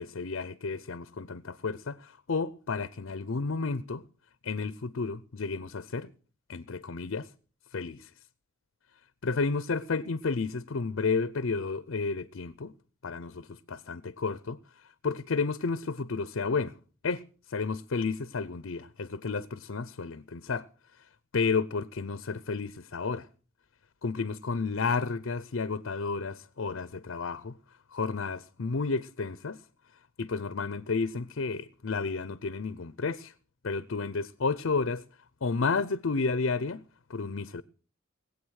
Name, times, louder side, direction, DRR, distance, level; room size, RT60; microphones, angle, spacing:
voice 1, 0.0-4.0 4.4-6.1 6.5-7.3 7.7-8.1 9.2-12.7 13.0-14.6 15.0-16.7 17.0-17.2 17.5-20.7 21.3-23.3 24.0-27.5 27.9-29.6 30.2-33.3 33.6-35.0 35.4-36.8 37.1-37.6, left 4 dB, 65° left, 0.6 m, -31 dB
19.5 x 8.4 x 6.4 m
head